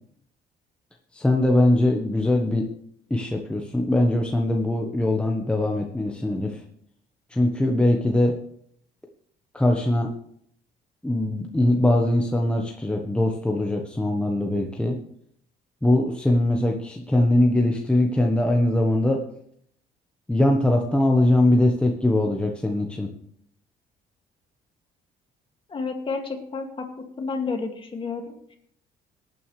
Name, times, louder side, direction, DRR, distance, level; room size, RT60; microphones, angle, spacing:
voice 1, 1.1-2.6 3.1-6.6 7.3-8.4 9.5-10.1 11.0-15.0 15.8-19.2 20.3-23.1, left 1 dB, 5° left, 1 dB, 1.1 m, -21 dB
voice 2, 25.7-26.9 27.2-28.6, left 4 dB, 30° left, 4 dB, 2.2 m, -30 dB
19.0 x 9.4 x 3.2 m, 0.68 s
cardioid pair, 110°, 17 cm